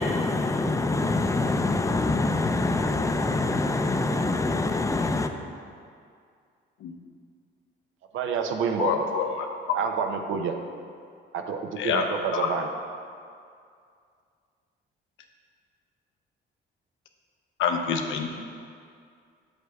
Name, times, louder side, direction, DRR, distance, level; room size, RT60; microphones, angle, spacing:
voice 1, 0.0-5.3, left 2 dB, 15° left, 7 dB, 0.5 m, -25 dB
voice 2, 8.1-9.0 9.7-10.5 11.3-12.7, right 6 dB, 80° right, 5 dB, 0.7 m, -28 dB
voice 3, 8.8-9.5 11.8-12.1 12.3-12.5 17.6-18.3, left 7 dB, 85° left, 4 dB, 0.7 m, -26 dB
7.9 x 6.6 x 3.5 m, 2.3 s
cardioid pair, 90°, 20 cm